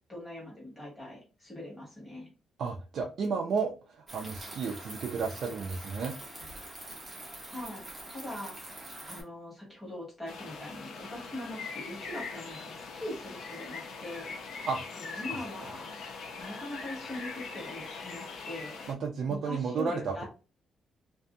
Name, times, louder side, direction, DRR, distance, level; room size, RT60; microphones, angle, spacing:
voice 1, 0.1-2.3 7.5-8.8 9.1-14.3 14.9-16.0 16.4-18.8 19.3-20.3, left 1 dB, 10° left, -4 dB, 1.4 m, -42 dB
voice 2, 2.6-6.1 14.7-14.8 15.3-15.4 18.9-20.1, right 5 dB, 55° right, 1 dB, 0.4 m, -32 dB
sound 1, 4.1-9.2, right 1 dB, 15° right, 0.7 m, -45 dB
sound 2, 10.3-18.9, left 4 dB, 75° left, 0.5 m, -41 dB
2.6 x 2.6 x 2.2 m, 0.33 s
cardioid pair, 175°, 0 cm